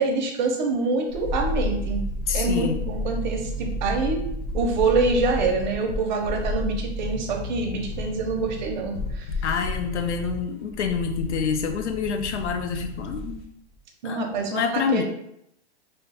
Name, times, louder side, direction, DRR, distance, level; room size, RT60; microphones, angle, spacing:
voice 1, 0.0-2.0 2.3-4.3 4.5-9.3 14.0-15.0, right 3 dB, 45° right, 3 dB, 0.6 m, -25 dB
sound 1, 1.1-13.5 13.7-13.8, left 1 dB, 55° left, 0.8 m, -31 dB
voice 2, 2.3-2.8 9.4-13.4 14.0-15.0, left 6 dB, 85° left, 6 dB, 0.6 m, -27 dB
2.8 x 2.3 x 3.4 m, 0.78 s
hypercardioid pair, 155°, 34 cm